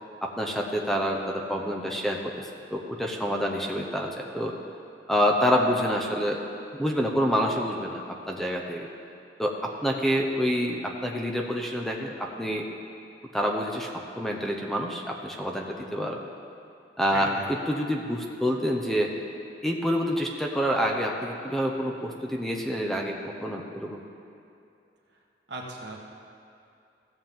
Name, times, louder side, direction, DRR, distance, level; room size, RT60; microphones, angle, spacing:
voice 1, 0.2-2.3 2.7-4.5 5.1-6.4 6.8-8.9 9.4-12.7 13.3-16.3 17.0-19.1 19.6-24.0, equal, ahead, 0 dB, 0.7 m, -27 dB
voice 2, 17.1-17.5 25.5-26.0, right 2 dB, 70° right, -1 dB, 1.4 m, -37 dB
15.5 x 7.3 x 3.7 m, 2.6 s
head